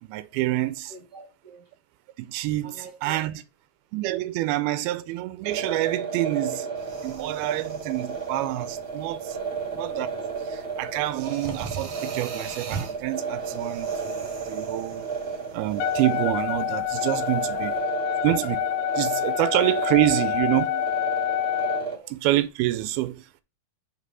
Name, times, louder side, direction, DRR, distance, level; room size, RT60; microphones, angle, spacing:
voice 1, 0.0-0.9 2.2-3.4 3.9-6.7 7.0-9.4 9.7-10.1 10.4-15.1 15.5-17.7 18.2-18.7 18.9-20.8 22.1-23.4, right 16 dB, 90° right, 2.4 m, -27 dB
voice 2, 0.9-1.7 2.6-3.3 9.5-10.0 17.2-17.6 19.3-19.4 21.8-22.1, right 2 dB, 35° right, 1.9 m, -46 dB
sound 1, 5.4-22.0, right 5 dB, 10° right, 2.2 m, -33 dB
sound 2, 6.8-17.8, right 5 dB, 55° right, 2.2 m, -42 dB
Wind instrument woodwind instrument, 15.8-21.9, left 14 dB, 85° left, 2.4 m, -27 dB
5.8 x 5.2 x 5.5 m
omnidirectional pair, 4.3 m